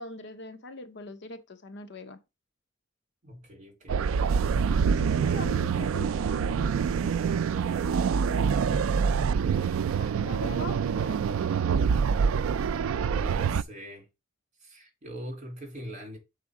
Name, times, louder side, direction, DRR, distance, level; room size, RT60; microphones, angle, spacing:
voice 1, 0.0-2.2 4.7-7.4 8.3-9.2 9.6-12.2, left 3 dB, 55° left, 0.7 m, -43 dB
voice 2, 3.2-4.1 13.1-14.1 14.6-16.2, equal, 35° right, 2.7 m, -42 dB
sound 1, 3.9-13.6, right 6 dB, 75° right, 0.3 m, -26 dB
7.1 x 4.2 x 4.7 m
head